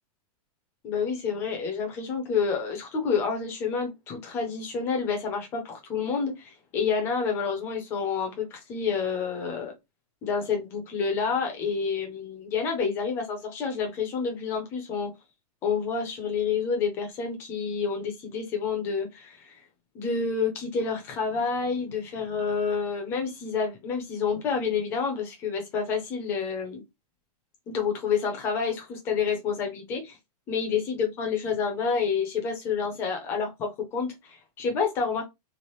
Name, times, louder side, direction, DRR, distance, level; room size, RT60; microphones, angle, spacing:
voice 1, 0.8-9.7 10.2-15.1 15.6-19.6 19.9-26.8 27.7-30.2 30.5-35.2, left 5 dB, 10° left, 0.5 m, -29 dB
3.2 x 2.4 x 2.9 m
hypercardioid pair, 175°, 20 cm